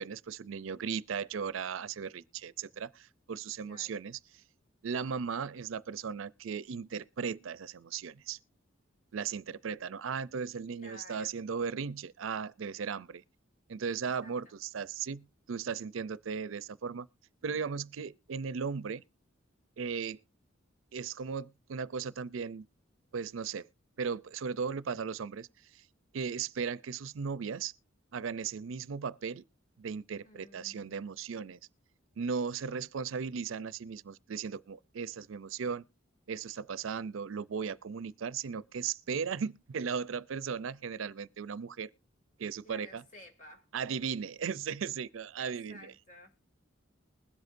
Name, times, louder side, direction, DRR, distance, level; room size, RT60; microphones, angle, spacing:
voice 1, 0.0-4.2 4.8-8.4 9.1-13.2 13.7-17.1 17.4-19.0 19.8-20.2 20.9-22.6 23.1-23.7 24.0-25.5 25.7-25.8 26.1-27.7 28.1-29.4 29.8-31.6 32.2-35.8 36.3-41.9 42.4-43.0 43.7-45.9, right 6 dB, 85° right, 0.5 m, -37 dB
voice 2, 3.6-4.0 10.8-11.4 14.0-14.5 30.2-31.2 42.6-43.7 45.4-46.4, left 1 dB, 40° left, 2.3 m, -54 dB
21.0 x 8.0 x 2.6 m
head